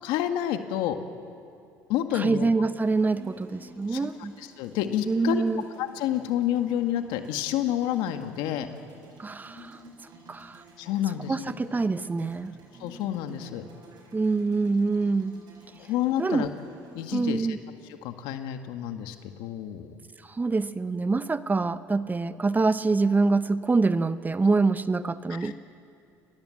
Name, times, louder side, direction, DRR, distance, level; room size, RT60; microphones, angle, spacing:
voice 1, 0.0-1.0 1.9-2.5 3.9-4.0 4.4-8.7 10.8-11.4 12.8-13.6 15.8-16.5 16.9-17.5 18.0-20.0 25.3-25.5, left 11 dB, 75° left, 7 dB, 1.8 m, -29 dB
voice 2, 2.1-4.3 5.1-5.6 9.2-9.8 10.3-10.6 11.3-12.5 14.1-15.4 16.2-16.5 17.1-17.6 20.2-25.5, right 3 dB, 20° right, 13 dB, 1.0 m, -25 dB
sound 1, 2.7-17.1, right 1 dB, 55° right, 7.2 m, -49 dB
28.5 x 19.5 x 7.8 m, 2.5 s
supercardioid pair, 75°, 8 cm